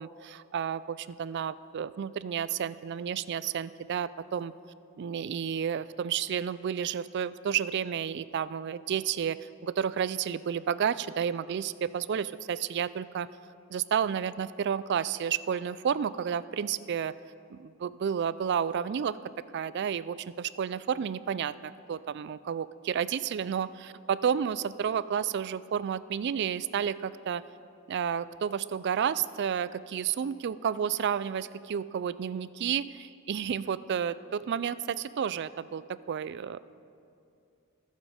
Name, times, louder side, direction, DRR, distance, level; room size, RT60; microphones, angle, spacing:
voice 1, 0.0-4.5 5.0-9.4 9.6-13.3 13.7-17.1 17.5-19.2 19.5-27.4 27.9-35.8 36.1-36.6, right 8 dB, 50° right, 17 dB, 0.3 m, -31 dB
22.0 x 7.5 x 5.0 m, 2.5 s
head